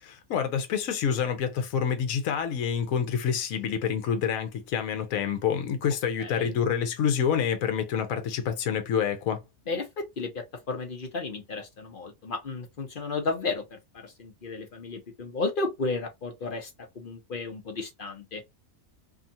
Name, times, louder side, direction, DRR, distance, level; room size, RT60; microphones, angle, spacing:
voice 1, 0.0-9.4, left 7 dB, 75° left, 1.1 m, -27 dB
voice 2, 6.2-6.5 9.7-18.4, left 3 dB, 50° left, 0.7 m, -33 dB
2.7 x 2.4 x 2.6 m
omnidirectional pair, 1.5 m